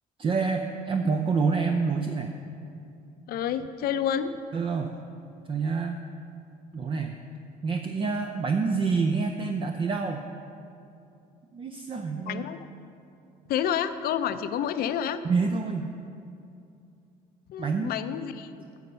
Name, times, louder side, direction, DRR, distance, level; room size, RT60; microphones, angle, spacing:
voice 1, 0.2-2.3 4.5-4.9 5.5-6.0 6.7-7.1 7.6-10.2 11.5-12.4 15.2-15.9 17.6-17.9, right 4 dB, 30° right, 5 dB, 0.5 m, -27 dB
voice 2, 3.3-4.4 12.3-12.6 13.5-15.2 17.5-18.5, left 9 dB, 65° left, 11 dB, 0.5 m, -29 dB
9.2 x 6.6 x 5.4 m, 2.6 s
cardioid pair, 110°, 17 cm